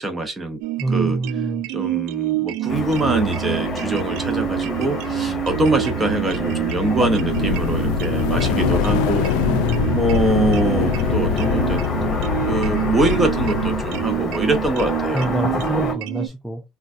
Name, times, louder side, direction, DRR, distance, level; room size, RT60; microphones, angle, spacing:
voice 1, 0.0-0.6 0.9-1.2 1.7-9.3 9.9-15.3, right 2 dB, 15° right, 0.8 m, -24 dB
sound 1, 0.6-16.3, right 15 dB, 80° right, 0.3 m, -27 dB
voice 2, 0.8-1.7 9.5-10.0 15.1-16.6, right 1 dB, ahead, 0.4 m, -26 dB
Car passing by / Traffic noise roadway noise, 2.7-16.0, left 3 dB, 30° left, 1.1 m, -28 dB
sound 2, 7.1-14.1, left 8 dB, 85° left, 0.3 m, -23 dB
3.9 x 2.2 x 2.4 m
cardioid pair, 135°, 0 cm